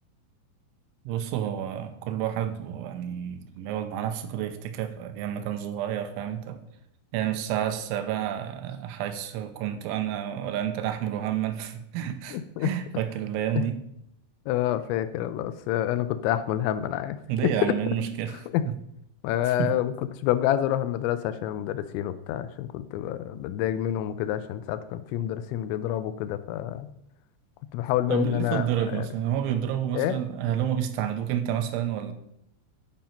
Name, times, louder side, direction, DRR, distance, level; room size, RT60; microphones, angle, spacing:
voice 1, 1.1-6.6 7.1-13.8 17.3-18.8 19.6-19.7 28.1-32.1, right 10 dB, 85° right, 8 dB, 3.2 m, -30 dB
voice 2, 12.3-12.7 13.6-13.7 14.5-17.2 17.4-17.9 18.5-18.7 19.2-19.9 20.2-26.9 27.7-29.1 29.9-30.2, left 12 dB, 85° left, 12 dB, 2.8 m, -27 dB
10.5 x 5.2 x 5.7 m, 0.78 s
omnidirectional pair, 5.4 m